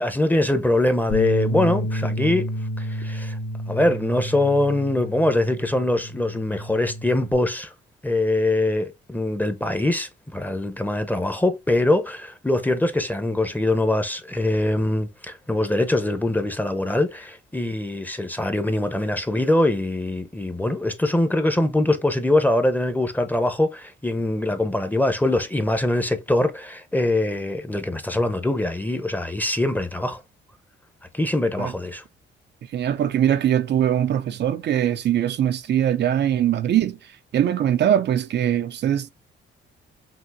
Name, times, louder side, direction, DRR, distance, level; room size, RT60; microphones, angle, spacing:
voice 1, 0.0-2.5 2.8-3.4 3.7-7.7 8.0-30.2 31.1-32.0, left 1 dB, 10° left, 0.9 m, -23 dB
Bass guitar, 1.1-7.4, equal, 85° left, 1.7 m, -29 dB
voice 2, 32.7-37.0 37.3-39.1, right 10 dB, 60° right, 0.6 m, -21 dB
5.8 x 2.7 x 2.6 m
cardioid pair, 90°, 20 cm